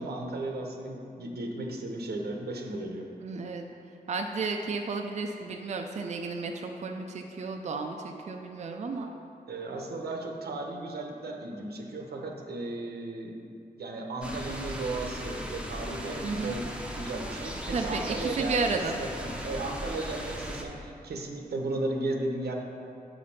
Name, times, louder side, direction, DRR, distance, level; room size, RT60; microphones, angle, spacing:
voice 1, 0.0-3.1 9.5-13.4 13.8-22.5, right 2 dB, 90° right, 2 dB, 0.9 m, -35 dB
voice 2, 3.2-3.7 4.1-9.1 16.2-16.5 17.7-19.0, right 4 dB, 45° right, 3 dB, 0.4 m, -32 dB
sound 1, 14.2-20.6, equal, 5° right, 0.7 m, -37 dB
7.8 x 5.0 x 5.5 m, 2.6 s
wide cardioid pair, 145°, 16 cm